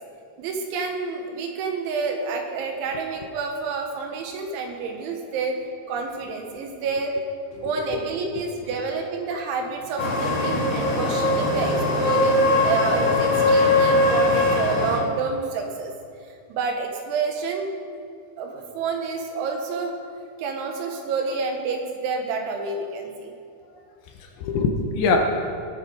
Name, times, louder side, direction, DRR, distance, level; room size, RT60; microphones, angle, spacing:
voice 1, 0.4-5.6 5.9-7.2 7.6-15.9 16.2-17.7 18.4-19.9 20.4-23.3, right 4 dB, 75° right, 3 dB, 3.3 m, -29 dB
voice 2, 7.9-8.4 24.2-25.2, left 4 dB, 75° left, 3 dB, 3.1 m, -24 dB
sound 1, 10.0-15.0, left 2 dB, 50° left, 2.9 m, -21 dB
20.5 x 8.8 x 4.8 m, 2.4 s
omnidirectional pair, 5.9 m